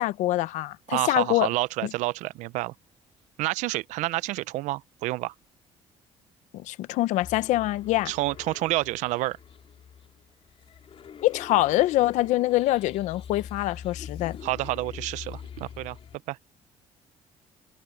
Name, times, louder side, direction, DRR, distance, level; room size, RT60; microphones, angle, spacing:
voice 1, 0.0-1.5 1.8-1.9 6.5-8.1 11.2-14.4, left 16 dB, 85° left, 0.8 m, -24 dB
voice 2, 0.9-2.7 3.4-5.3 8.1-9.4 14.4-16.0 16.3-16.4, right 18 dB, 85° right, 0.5 m, -29 dB
sound 1, 7.2-16.2, left 8 dB, 50° left, 3.3 m, -44 dB
cardioid pair, 85°, 12 cm